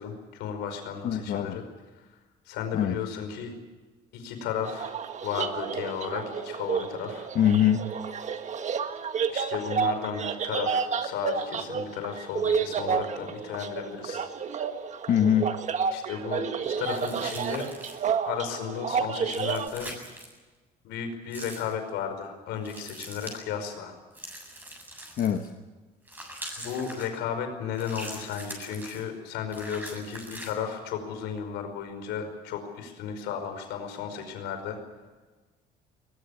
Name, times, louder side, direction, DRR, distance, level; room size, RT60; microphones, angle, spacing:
voice 1, 0.0-1.6 2.5-3.5 4.1-4.9 5.2-7.3 9.3-14.3 15.9-17.7 18.2-19.9 20.8-23.9 26.6-34.8, left 7 dB, 90° left, 5.2 m, -34 dB
voice 2, 1.0-1.6 2.7-3.0 7.3-7.9 15.1-15.5 25.2-25.5, left 9 dB, 60° left, 1.3 m, -23 dB
sound 1, 4.6-19.7, right 6 dB, 45° right, 1.7 m, -30 dB
sound 2, 16.8-18.1 19.2-20.3 21.3-21.7 22.7-23.4 24.1-25.5 26.1-27.1 27.8-29.0 29.5-30.5, right 1 dB, 10° right, 7.7 m, -42 dB
21.5 x 20.5 x 8.4 m
cardioid pair, 110°, 17 cm